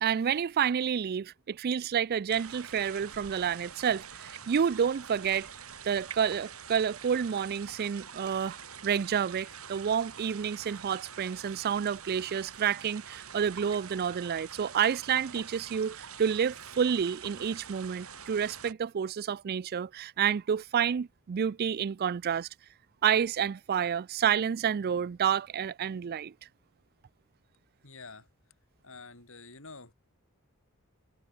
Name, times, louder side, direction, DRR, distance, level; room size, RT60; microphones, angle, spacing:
voice 1, 0.0-5.5 5.8-22.5 23.0-26.3, right 8 dB, 45° right, 0.3 m, -29 dB
sound 1, 2.3-18.7, right 7 dB, 75° right, 5.6 m, -46 dB
voice 2, 27.8-28.3 28.8-29.9, left 3 dB, 65° left, 5.7 m, -48 dB
head